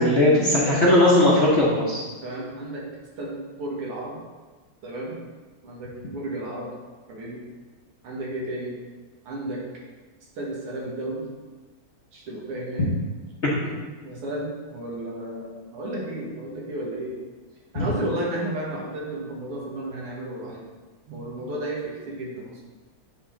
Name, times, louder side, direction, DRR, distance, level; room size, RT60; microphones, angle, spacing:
voice 1, 0.0-2.0 13.4-13.7 17.7-17.8, left 1 dB, 50° left, -6 dB, 0.9 m, -19 dB
voice 2, 0.6-1.0 2.2-2.8 3.2-4.2 4.8-5.2 5.6-6.7 7.1-7.4 8.0-8.8 9.2-9.6 10.4-11.3 12.1-13.0 13.6-17.2 17.7-20.6 21.1-22.6, right 1 dB, 90° right, -3 dB, 2.4 m, -33 dB
9.4 x 3.7 x 3.8 m, 1.3 s
omnidirectional pair, 2.4 m